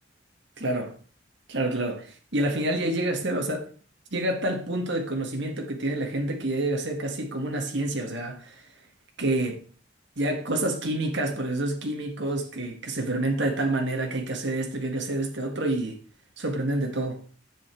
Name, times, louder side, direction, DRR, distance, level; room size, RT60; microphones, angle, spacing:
voice 1, 0.6-1.0 1.5-3.7 4.1-8.6 9.2-9.6 10.2-16.0 16.4-17.2, right 1 dB, 65° right, 1.9 m, -28 dB
10.0 x 8.2 x 4.6 m
head